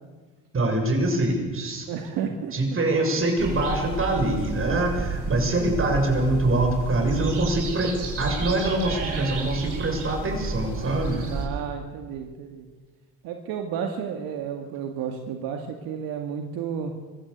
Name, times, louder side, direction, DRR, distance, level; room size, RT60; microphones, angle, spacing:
voice 1, 0.5-1.8 2.5-11.2, right 2 dB, 35° right, 3 dB, 7.3 m, -24 dB
voice 2, 1.9-2.5 11.3-12.7 13.2-16.9, right 7 dB, 75° right, 4 dB, 2.1 m, -32 dB
sound 1, 3.4-11.4, right 3 dB, 55° right, 7.0 m, -31 dB
24.5 x 15.5 x 8.2 m, 1.4 s
supercardioid pair, 80°, 36 cm